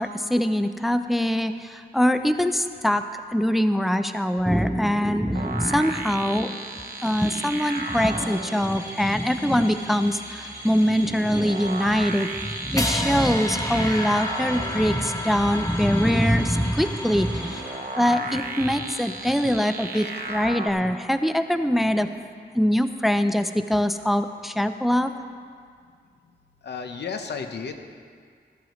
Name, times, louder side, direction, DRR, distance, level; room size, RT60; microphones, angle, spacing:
voice 1, 0.0-3.0 3.3-6.6 7.0-17.6 17.9-22.1 22.5-25.1, equal, ahead, 9 dB, 0.5 m, -23 dB
sound 1, 5.3-20.7, right 3 dB, 55° right, 0.9 m, -36 dB
sound 2, 6.6-18.4, right 1 dB, 15° right, 1.7 m, -40 dB
sound 3, 12.8-18.9, left 1 dB, 20° left, 1.0 m, -33 dB
voice 2, 19.9-20.5 26.6-27.7, left 5 dB, 80° left, 6 dB, 0.9 m, -34 dB
14.5 x 13.5 x 3.1 m, 2.1 s
wide cardioid pair, 90°, 17 cm